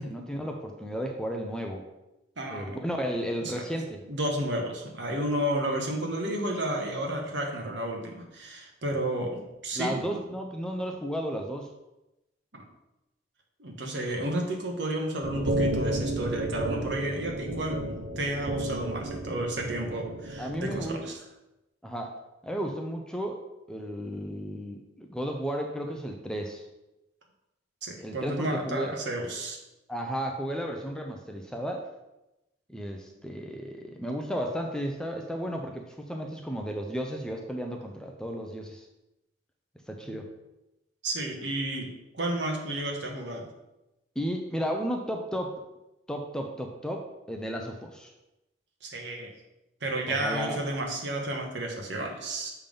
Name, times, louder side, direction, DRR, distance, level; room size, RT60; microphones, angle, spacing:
voice 1, 0.0-1.9 2.5-4.0 9.8-11.7 20.4-21.0 21.8-22.1 22.4-23.4 23.7-26.6 28.0-29.0 29.9-31.9 32.7-38.8 39.9-40.3 44.2-45.6 46.1-48.1 50.1-50.6, equal, 5° left, 2 dB, 0.5 m, -33 dB
voice 2, 2.4-2.7 3.4-3.6 4.1-10.1 12.5-12.6 13.6-17.9 18.2-21.2 27.8-29.6 40.1-40.2 41.0-43.5 48.8-49.3 49.8-52.5, right 1 dB, 65° right, 1 dB, 1.3 m, -32 dB
sound 1, 15.2-20.9, right 1 dB, 80° right, 0.6 m, -32 dB
7.0 x 3.6 x 5.3 m, 0.94 s
head